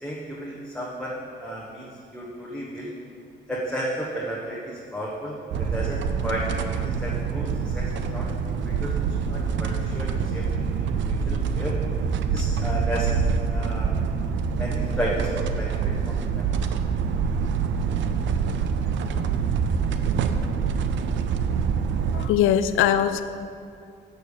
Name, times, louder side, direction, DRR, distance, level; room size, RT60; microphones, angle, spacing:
voice 1, 0.0-2.9 3.5-6.5 6.8-8.3 8.6-10.4 11.1-11.8 12.3-13.9 14.6-16.6, right 1 dB, 5° left, -5 dB, 1.2 m, -33 dB
sound 1, 5.5-22.3, right 6 dB, 70° right, 0.5 m, -25 dB
voice 2, 22.1-23.2, left 10 dB, 85° left, 11 dB, 0.5 m, -21 dB
7.0 x 6.7 x 6.5 m, 2.4 s
cardioid pair, 90°, 20 cm